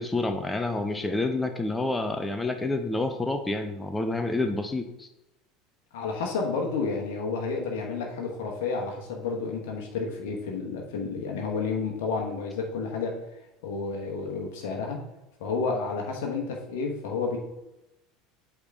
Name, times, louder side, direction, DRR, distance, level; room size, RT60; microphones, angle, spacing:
voice 1, 0.0-5.1, left 2 dB, 15° left, 6 dB, 0.6 m, -28 dB
voice 2, 5.9-13.1 13.6-15.0 15.4-17.4, left 4 dB, 65° left, 0 dB, 1.1 m, -30 dB
8.0 x 3.6 x 3.5 m, 0.92 s
figure-of-eight pair, 70°, 0 cm